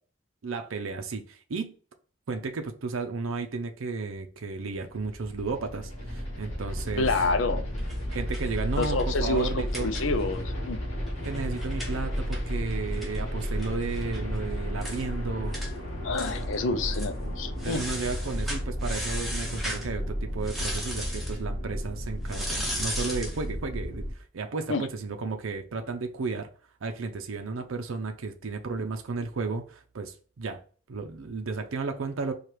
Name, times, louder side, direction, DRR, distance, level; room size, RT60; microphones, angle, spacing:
voice 1, 0.4-1.7 2.3-7.1 8.1-9.9 11.2-15.6 17.6-26.5 26.8-30.6 30.9-32.3, right 4 dB, 75° right, 0.6 m, -33 dB
sound 1, 4.7-24.1, equal, 30° left, 1.8 m, -33 dB
voice 2, 7.0-7.7 8.8-9.5 9.8-10.8 16.0-17.8 24.7-24.9, left 3 dB, 65° left, 0.6 m, -28 dB
sound 2, 7.8-10.4 10.7-10.8 11.1-14.2 14.5-14.6 14.8-15.0 15.5-15.7 16.1-16.6 16.9-17.1 17.6-19.9 20.4-21.4 22.3-23.4, equal, ahead, 1.1 m, -37 dB
4.5 x 2.4 x 4.8 m
head